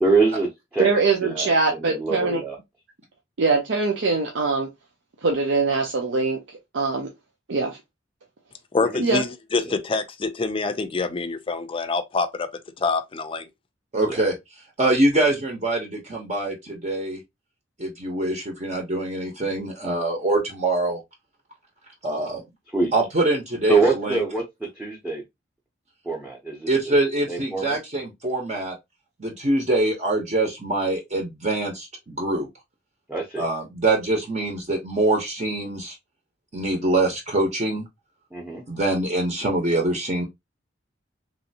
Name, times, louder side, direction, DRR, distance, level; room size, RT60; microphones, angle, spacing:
voice 1, 0.0-0.9 1.2-2.6 8.8-8.9 9.7-9.8 14.1-14.2 22.7-22.9 23.7-24.4 24.7-25.2 26.0-26.9 27.3-27.8 33.1-33.5 38.3-38.6, right 3 dB, 10° right, 0.6 m, -24 dB
voice 2, 0.8-2.4 3.4-4.7 5.2-6.4 6.7-7.1 7.5-7.8 9.0-9.2, right 4 dB, 85° right, 0.6 m, -22 dB
voice 3, 8.7-12.5 12.8-13.5, left 4 dB, 30° left, 0.4 m, -26 dB
voice 4, 13.9-14.3 14.8-17.2 17.8-21.0 22.0-22.4 22.9-24.2 26.7-28.7 29.2-32.5 33.4-35.9 36.5-37.8 38.7-40.2, right 2 dB, 40° right, 0.7 m, -24 dB
3.1 x 2.6 x 2.7 m
head